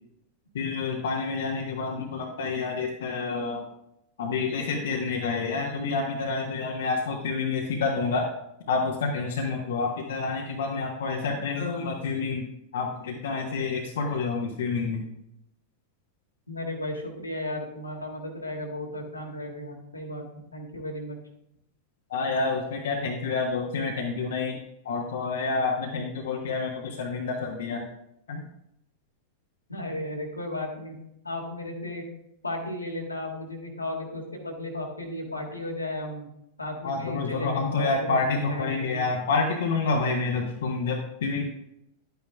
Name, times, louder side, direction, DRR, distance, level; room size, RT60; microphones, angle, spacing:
voice 1, 0.5-3.6 4.2-8.3 8.7-12.5 12.7-15.0 22.1-24.6 24.8-27.9 28.3-28.4 36.8-41.5, left 4 dB, 60° left, 0 dB, 1.1 m, -28 dB
voice 2, 16.5-20.3 20.5-21.2 29.7-31.0 31.2-32.1 32.4-36.3 36.6-39.1, left 1 dB, 80° left, 0 dB, 1.8 m, -35 dB
11.5 x 9.1 x 2.3 m, 0.80 s
figure-of-eight pair, 90°, 0 cm